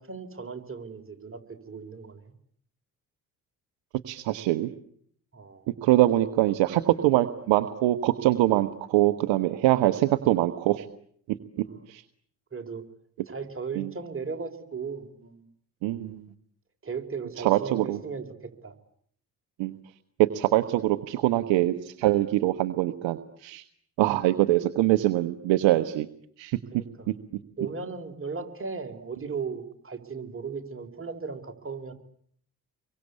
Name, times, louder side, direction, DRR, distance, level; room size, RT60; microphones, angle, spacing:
voice 1, 0.0-2.3 5.3-5.7 11.7-11.9 12.5-12.8 13.3-15.4 16.8-18.7 26.7-27.1 27.6-31.9, right 5 dB, 25° right, 5 dB, 4.3 m, -37 dB
voice 2, 4.1-4.7 5.8-10.8 11.9-12.0 13.8-13.9 15.8-16.2 17.4-18.0 19.6-19.7 20.2-23.6 24.0-26.1 26.4-26.6 27.1-27.2, right 15 dB, 65° right, 12 dB, 1.2 m, -23 dB
28.5 x 23.5 x 8.4 m, 0.64 s
hypercardioid pair, 50°, 49 cm